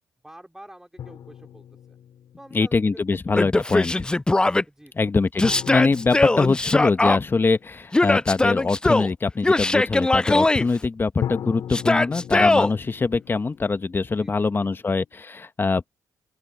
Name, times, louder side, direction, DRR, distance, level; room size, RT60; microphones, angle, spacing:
voice 1, 0.2-2.0 2.4-3.5 4.7-5.1 14.2-14.9, right 1 dB, 5° right, 4.1 m, -48 dB
sound 1, 1.0-2.8 5.4-8.3 11.2-15.0, left 9 dB, 65° left, 3.0 m, -38 dB
voice 2, 2.5-3.9 5.0-15.9, left 4 dB, 30° left, 1.4 m, -23 dB
Yell, 3.3-4.6 5.4-7.2 7.9-9.1 9.4-10.7 11.7-12.7, left 2 dB, 10° left, 0.3 m, -20 dB
open air
hypercardioid pair, 55°, 7 cm